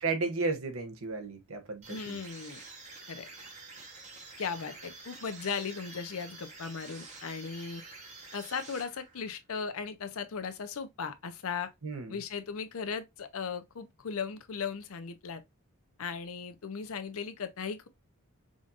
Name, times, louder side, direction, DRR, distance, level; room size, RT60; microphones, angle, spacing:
voice 1, 0.0-2.2 11.8-12.2, right 3 dB, 70° right, 0.9 m, -33 dB
sound 1, 1.8-9.3, right 3 dB, 30° right, 1.0 m, -48 dB
voice 2, 1.9-2.6 3.1-3.3 4.4-7.8 8.3-11.7 12.1-15.4 16.0-17.9, left 6 dB, 70° left, 0.6 m, -37 dB
4.9 x 2.6 x 2.4 m
head